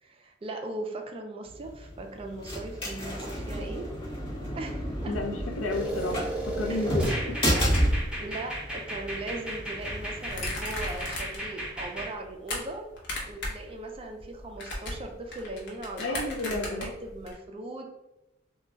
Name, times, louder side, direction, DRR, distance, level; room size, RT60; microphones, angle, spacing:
voice 1, 0.0-3.9 4.5-5.1 6.7-6.9 7.5-7.8 8.2-12.9 13.3-17.9, right 2 dB, 30° right, 3 dB, 0.4 m, -39 dB
sound 1, 1.5-11.1, equal, 30° left, 1.1 m, -32 dB
voice 2, 5.1-7.5 16.0-16.9, left 2 dB, 85° left, 2 dB, 0.5 m, -32 dB
sound 2, 5.7-12.1, right 1 dB, 5° right, 0.7 m, -35 dB
sound 3, 10.3-11.5 11.9-12.6 13.0-13.7 13.9-17.3, left 1 dB, 60° left, 0.8 m, -36 dB
2.2 x 2.2 x 3.8 m, 0.96 s
head